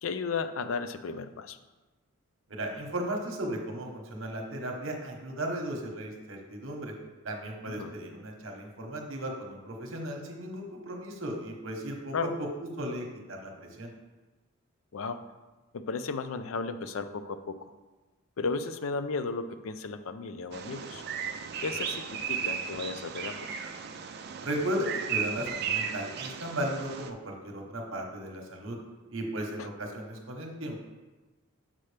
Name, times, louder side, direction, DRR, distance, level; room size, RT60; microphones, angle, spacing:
voice 1, 0.0-1.6 7.7-7.9 12.1-12.3 14.9-15.2 15.7-17.7 18.4-21.0 21.6-23.5 29.6-29.7, left 4 dB, 70° left, 10 dB, 0.4 m, -34 dB
voice 2, 2.5-6.9 7.2-12.5 12.8-13.9 24.4-28.8 29.1-30.8, right 1 dB, 60° right, 1 dB, 1.1 m, -36 dB
Bird vocalization bird call bird song, 20.5-27.1, right 7 dB, 45° right, 0.4 m, -35 dB
7.4 x 5.7 x 3.3 m, 1.2 s
head